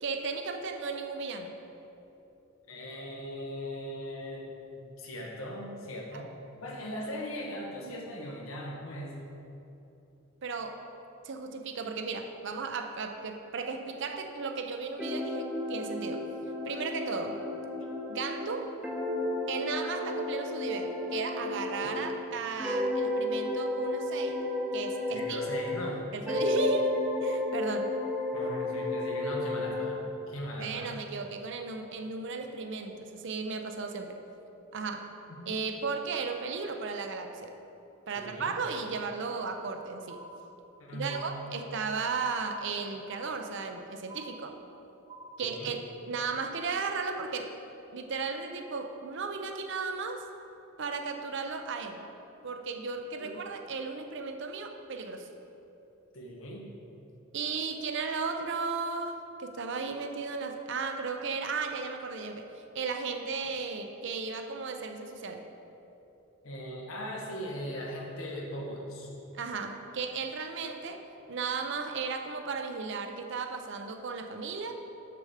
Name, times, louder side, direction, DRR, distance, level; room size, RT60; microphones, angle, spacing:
voice 1, 0.0-1.6 6.1-6.2 10.4-10.8 11.2-16.2 16.6-17.4 18.1-18.7 19.5-24.4 24.7-25.4 26.1-27.9 28.4-28.5 30.6-34.2 34.7-35.1 35.5-37.5 38.1-40.2 40.9-44.6 45.4-45.8 46.1-47.5 47.9-50.2 50.8-52.0 52.4-55.3 57.3-62.5 62.7-65.5 69.3-71.0 71.3-74.8, right 4 dB, 60° right, 5 dB, 0.6 m, -35 dB
voice 2, 2.7-6.3 6.6-9.1 21.8-22.0 25.1-26.1 28.3-30.0 30.3-31.0 35.4-35.6 38.1-38.5 40.8-41.3 45.4-45.7 53.2-53.3 56.1-56.7 66.4-69.1, equal, 90° left, -1 dB, 1.3 m, -39 dB
sound 1, 15.0-22.2 22.6-26.0 26.3-29.9, left 2 dB, 5° right, 0.7 m, -33 dB
sound 2, 40.1-40.8 41.1-41.8 42.1-42.8 43.1-43.8 44.1-44.8 45.1-45.6, right 2 dB, 25° right, 0.9 m, -48 dB
6.8 x 6.8 x 4.9 m, 2.9 s
head